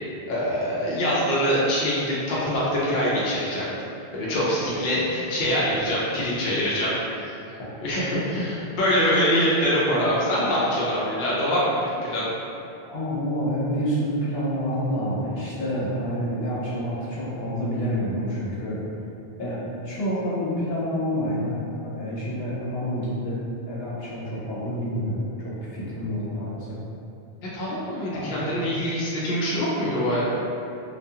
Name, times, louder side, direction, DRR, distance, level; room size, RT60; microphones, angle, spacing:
voice 1, 0.3-3.7 4.1-12.3 27.5-30.2, equal, 60° left, -7 dB, 0.7 m, -24 dB
voice 2, 12.9-18.8 19.4-26.8 28.1-28.5, equal, 75° left, -8 dB, 0.9 m, -28 dB
2.3 x 2.3 x 2.7 m, 2.7 s
omnidirectional pair, 1.0 m